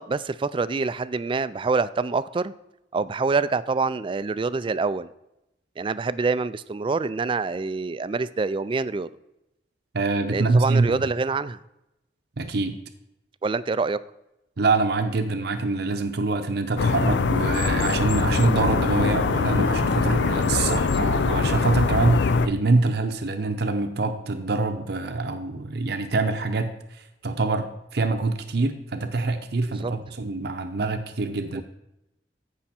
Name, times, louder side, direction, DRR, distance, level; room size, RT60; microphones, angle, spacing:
voice 1, 0.0-2.5 2.9-5.1 5.8-9.1 10.3-11.6 13.4-14.0 20.6-20.8 29.8-29.9 31.5-31.6, right 4 dB, 30° right, 15 dB, 0.3 m, -26 dB
voice 2, 9.9-11.1 12.4-12.8 14.6-31.6, right 3 dB, 65° right, 7 dB, 0.8 m, -25 dB
sound 1, 16.8-22.5, left 4 dB, 80° left, 0.5 m, -23 dB
14.5 x 5.7 x 4.3 m, 0.88 s
head